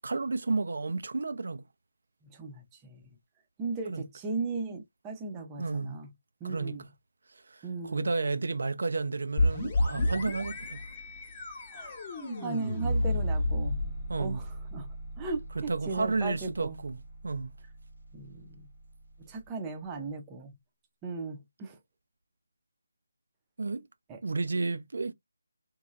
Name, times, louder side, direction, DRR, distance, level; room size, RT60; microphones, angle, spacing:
voice 1, 0.0-1.6 3.9-4.0 5.6-6.0 6.4-6.7 7.3-10.8 14.1-14.4 15.6-17.5 23.6-23.9 24.2-25.1, right 3 dB, 65° right, 0.4 m, -32 dB
voice 2, 2.2-3.0 3.6-6.1 6.4-6.8 7.6-8.1 11.7-12.0 12.4-13.8 14.2-16.8 18.1-18.7 19.2-20.5 21.0-21.8 24.1-24.2, right 4 dB, 15° right, 0.6 m, -37 dB
sound 1, 9.4-18.9, left 1 dB, 20° left, 0.9 m, -32 dB
3.0 x 2.2 x 2.4 m
figure-of-eight pair, 165°, 0 cm